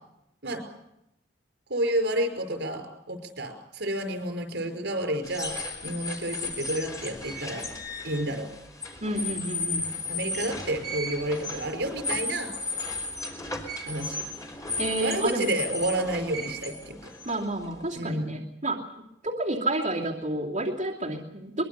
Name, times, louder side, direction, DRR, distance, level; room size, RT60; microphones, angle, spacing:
voice 1, 1.7-5.5 5.8-7.7 8.0-8.5 10.1-12.5 13.9-14.3 15.0-17.1 17.9-18.4, right 1 dB, 80° right, 5 dB, 5.1 m, -30 dB
sound 1, 5.2-18.0, left 2 dB, 20° left, 3.7 m, -35 dB
voice 2, 9.0-9.9 14.8-15.5 17.2-18.8 19.2-21.6, right 1 dB, 45° right, -2 dB, 2.7 m, -30 dB
23.5 x 21.5 x 6.9 m, 0.82 s
head